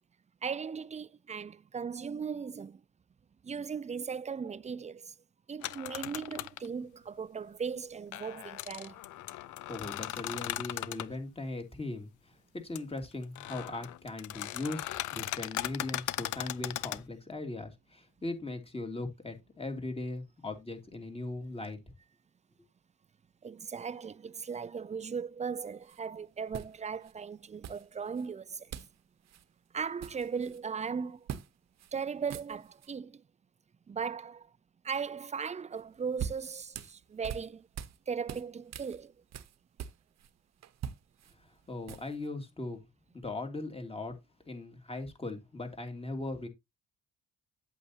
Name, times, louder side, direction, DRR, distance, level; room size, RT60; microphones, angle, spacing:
voice 1, 0.4-2.8 3.4-5.1 5.5-9.0 23.4-28.7 29.7-31.3 31.9-33.2 33.9-34.5 34.8-37.7 38.1-39.1, right 6 dB, 25° right, 0.5 m, -38 dB
sound 1, 5.6-6.7 8.1-11.1 12.8-12.9 13.2-17.0, left 15 dB, 75° left, 0.6 m, -38 dB
voice 2, 9.7-12.1 12.5-21.8 41.7-42.8 43.1-44.2 44.5-46.5, left 2 dB, 20° left, 2.7 m, -39 dB
sound 2, 25.8-26.0 26.5-27.1 27.6-28.3 28.7-29.0 29.3-29.4 29.8-30.6 31.3-31.5 31.8-31.9 32.2-32.9 35.8-38.0 38.3-40.3 40.6-42.3, right 9 dB, 60° right, 1.0 m, -43 dB
8.4 x 8.3 x 2.8 m
cardioid pair, 90°, 30 cm